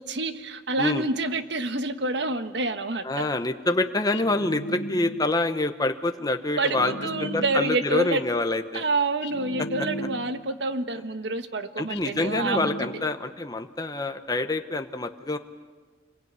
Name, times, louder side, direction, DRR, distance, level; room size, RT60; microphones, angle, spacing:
voice 1, 0.0-3.3 6.6-8.2 8.7-12.7, right 2 dB, 70° right, 10 dB, 1.4 m, -28 dB
voice 2, 3.0-6.9 7.2-8.8 11.8-15.4, left 2 dB, 20° left, 7 dB, 1.0 m, -26 dB
sound 1, 4.1-5.5 6.6-8.0 9.2-10.6 11.9-13.3, equal, 70° left, 1.8 m, -36 dB
26.5 x 22.5 x 9.6 m, 1.4 s
head